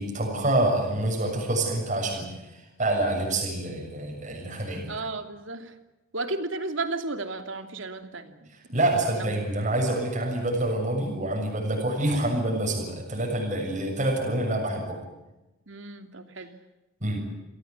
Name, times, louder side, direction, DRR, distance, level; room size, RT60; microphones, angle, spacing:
voice 1, 0.0-5.0 8.5-15.0 16.4-16.5 17.0-17.2, right 1 dB, 35° right, 0 dB, 7.0 m, -27 dB
voice 2, 4.9-5.7 6.1-8.5 9.1-9.3 15.7-16.5, right 3 dB, 70° right, 8 dB, 2.8 m, -33 dB
28.5 x 17.5 x 8.5 m, 1.0 s
head